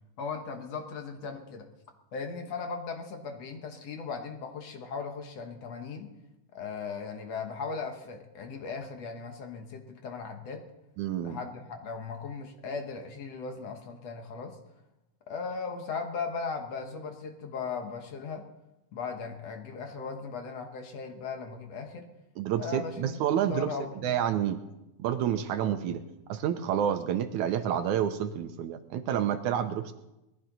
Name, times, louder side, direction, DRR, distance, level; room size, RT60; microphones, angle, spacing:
voice 1, 0.2-1.7 2.1-6.1 6.5-10.6 11.2-14.6 15.3-18.4 18.9-22.1 22.6-24.1, left 5 dB, 60° left, 5 dB, 2.0 m, -38 dB
voice 2, 11.0-11.4 22.4-23.7 24.0-24.6 25.0-29.9, right 9 dB, 75° right, 9 dB, 1.9 m, -29 dB
20.5 x 15.0 x 4.0 m, 0.95 s
omnidirectional pair, 3.8 m